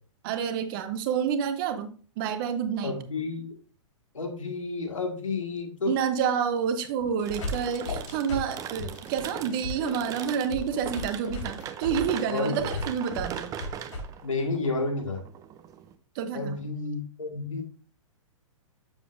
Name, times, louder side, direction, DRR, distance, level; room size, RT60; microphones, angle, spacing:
voice 1, 0.2-1.9 2.2-3.0 5.9-13.5 16.1-16.6, right 7 dB, 45° right, 10 dB, 0.9 m, -29 dB
voice 2, 2.8-3.5 4.1-5.9 9.8-9.9 12.3-12.7 14.2-15.2 16.3-17.6, left 3 dB, 90° left, 3 dB, 1.7 m, -31 dB
sound 1, 7.0-14.0, left 2 dB, 65° left, 3.0 m, -36 dB
sound 2, 7.3-15.9, right 9 dB, 20° right, 0.5 m, -40 dB
7.1 x 6.8 x 2.5 m, 0.41 s
hypercardioid pair, 125°, 16 cm